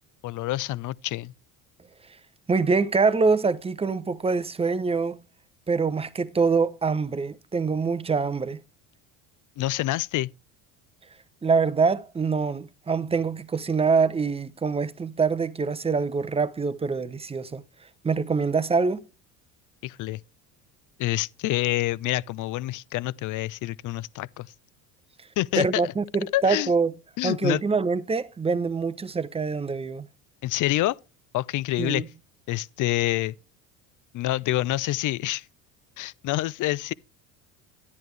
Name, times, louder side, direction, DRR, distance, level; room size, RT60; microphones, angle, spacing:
voice 1, 0.2-1.3 9.6-10.3 19.8-20.2 21.0-24.5 25.4-25.9 26.3-26.7 27.2-27.6 30.4-31.0 31.3-32.0 32.5-33.3 34.1-35.4 36.0-36.9, left 16 dB, 50° left, 0.5 m, -27 dB
voice 2, 2.5-5.2 5.7-8.6 11.4-17.6 18.0-19.0 25.5-26.9 27.2-30.1 31.8-32.1, right 4 dB, 15° right, 0.6 m, -25 dB
10.5 x 9.5 x 3.2 m
supercardioid pair, 85°, 42 cm